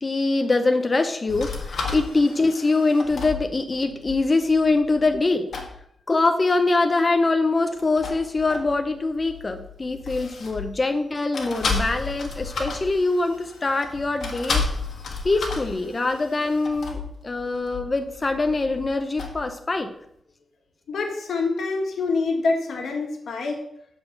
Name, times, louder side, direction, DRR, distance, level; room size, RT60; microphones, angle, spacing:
voice 1, 0.0-5.5 6.1-14.6 15.2-19.9, left 3 dB, 25° left, 6 dB, 0.5 m, -23 dB
sound 1, 1.3-5.3 5.5-5.8 7.7-11.0 11.3-19.6, left 4 dB, 65° left, 1.5 m, -33 dB
voice 2, 20.9-23.6, left 3 dB, 90° left, 2 dB, 1.5 m, -26 dB
7.0 x 4.4 x 6.6 m, 0.73 s
wide cardioid pair, 160°, 0 cm